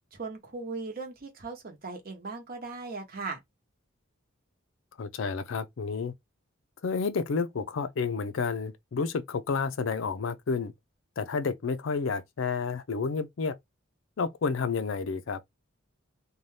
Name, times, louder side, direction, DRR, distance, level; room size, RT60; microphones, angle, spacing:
voice 1, 0.1-3.4, right 3 dB, 45° right, 0.9 m, -38 dB
voice 2, 5.0-6.1 6.8-10.7 11.2-13.6 14.2-15.4, left 5 dB, 65° left, 0.4 m, -30 dB
2.6 x 2.3 x 3.2 m
head